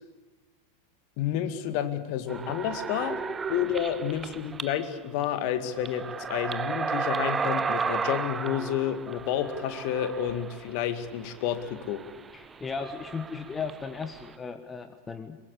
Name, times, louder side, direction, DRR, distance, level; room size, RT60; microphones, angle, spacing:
voice 1, 1.2-3.2 3.5-12.0, left 10 dB, 45° left, 11 dB, 2.1 m, -30 dB
sound 1, 2.3-4.9 5.2-5.3 5.7-14.3, right 5 dB, 15° right, 1.0 m, -34 dB
voice 2, 12.3-15.4, left 5 dB, 15° left, 10 dB, 1.3 m, -36 dB
24.0 x 22.0 x 8.5 m, 1.1 s
figure-of-eight pair, 90°, 0 cm